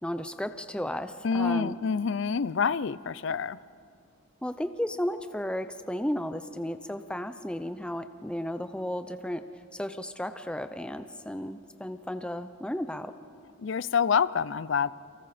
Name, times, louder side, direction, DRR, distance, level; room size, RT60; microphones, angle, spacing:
voice 1, 0.0-1.8 4.4-13.1, equal, 5° left, 9 dB, 0.5 m, -34 dB
voice 2, 1.2-3.6 13.6-14.9, left 6 dB, 60° left, 18 dB, 0.4 m, -27 dB
29.5 x 24.5 x 4.3 m, 2.5 s
head